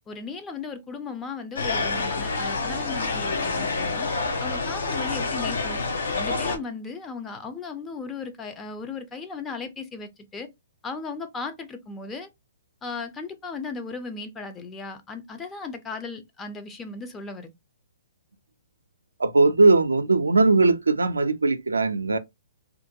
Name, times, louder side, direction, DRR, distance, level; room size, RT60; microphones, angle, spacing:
voice 1, 0.1-4.1 4.4-5.8 6.1-10.5 10.8-12.3 12.8-17.5, left 4 dB, 15° left, 0.5 m, -36 dB
sound 1, 1.6-6.6, left 3 dB, 70° left, 0.7 m, -27 dB
voice 2, 19.2-22.2, right 3 dB, 85° right, 0.4 m, -19 dB
2.5 x 2.1 x 2.6 m
hypercardioid pair, 125°, 0 cm